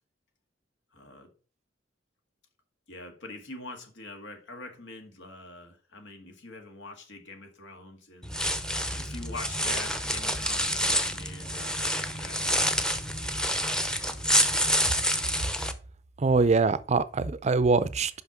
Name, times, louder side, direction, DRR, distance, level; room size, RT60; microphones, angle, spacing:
voice 1, 0.9-1.3 2.9-8.3 8.9-12.5, left 2 dB, 90° left, 2.0 m, -44 dB
sound 1, 8.2-15.7, equal, 5° left, 0.7 m, -28 dB
voice 2, 16.2-18.2, right 4 dB, 40° right, 0.5 m, -23 dB
5.8 x 5.6 x 5.8 m
head